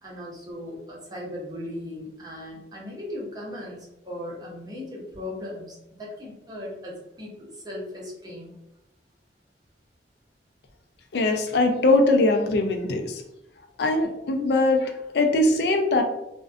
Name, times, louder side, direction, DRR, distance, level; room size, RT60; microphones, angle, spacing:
voice 1, 0.0-8.6, left 1 dB, 20° right, -3 dB, 0.6 m, -38 dB
voice 2, 11.1-13.2 13.8-16.0, left 2 dB, 65° left, 5 dB, 0.4 m, -21 dB
2.5 x 2.2 x 2.3 m, 0.86 s
head